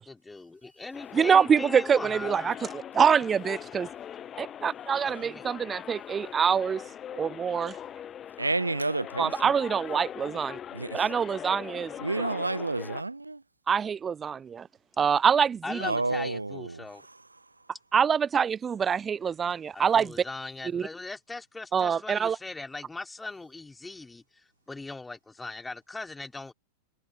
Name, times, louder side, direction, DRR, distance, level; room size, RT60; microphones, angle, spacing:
voice 1, 0.0-2.6 5.0-5.5 15.6-17.0 19.7-24.2 24.7-26.5, left 3 dB, 10° left, 3.4 m, -40 dB
sound 1, 0.9-13.0, left 9 dB, 25° left, 1.1 m, -41 dB
voice 2, 1.1-3.9 4.4-6.8 7.1-7.7 9.2-10.6 10.9-11.9 13.7-14.6 15.0-15.8 17.9-20.1 20.7-20.8 21.7-22.4, right 7 dB, 20° right, 0.5 m, -25 dB
voice 3, 8.4-9.5 10.7-11.1 12.0-13.4 15.8-17.2, right 2 dB, 80° right, 0.5 m, -30 dB
figure-of-eight pair, 90°, 0 cm